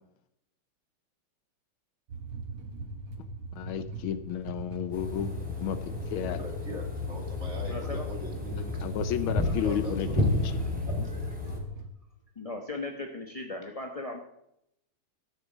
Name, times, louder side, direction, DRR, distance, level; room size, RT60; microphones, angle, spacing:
sound 1, 2.1-11.9, right 2 dB, 75° right, 2.1 m, -40 dB
voice 1, 3.5-6.4 8.8-10.6, left 9 dB, 75° left, 11 dB, 1.6 m, -33 dB
sound 2, 4.9-11.6, left 2 dB, 5° right, 2.5 m, -32 dB
voice 2, 6.2-8.9 9.6-10.4, equal, 30° right, 0 dB, 2.8 m, -42 dB
voice 3, 7.7-8.0 11.0-11.6 12.4-14.2, left 2 dB, 30° left, 2 dB, 0.6 m, -38 dB
13.0 x 7.1 x 7.3 m, 0.78 s
omnidirectional pair, 2.4 m